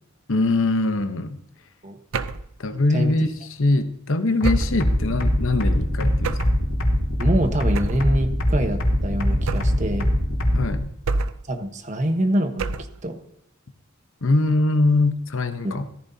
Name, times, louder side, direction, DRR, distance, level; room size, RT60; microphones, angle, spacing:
voice 1, 0.3-1.4 2.6-6.4 10.5-10.9 14.2-15.9, left 2 dB, 65° left, 9 dB, 1.0 m, -22 dB
sound 1, 2.1-2.5 4.4-4.9 6.2-6.6 7.7-8.1 9.5-9.9 11.1-11.5 12.6-13.0, right 3 dB, 70° right, 0.6 m, -28 dB
sound 2, 4.4-10.8, equal, 85° left, 2.9 m, -21 dB
voice 2, 7.2-10.1 11.5-13.2 15.6-15.8, right 1 dB, 35° right, 7 dB, 1.2 m, -25 dB
15.0 x 14.0 x 2.8 m, 0.75 s
head